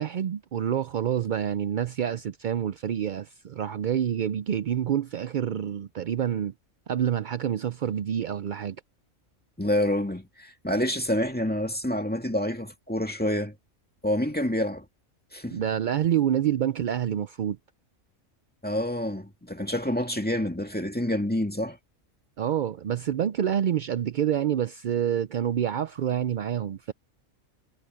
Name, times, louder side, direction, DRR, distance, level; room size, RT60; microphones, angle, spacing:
voice 1, 0.0-6.5 6.9-8.8 15.5-17.6 22.4-26.9, right 9 dB, 70° right, 0.4 m, -27 dB
voice 2, 9.6-13.5 14.0-14.9 15.3-15.6 18.6-21.8, left 1 dB, 5° left, 2.1 m, -27 dB
omnidirectional pair, 1.4 m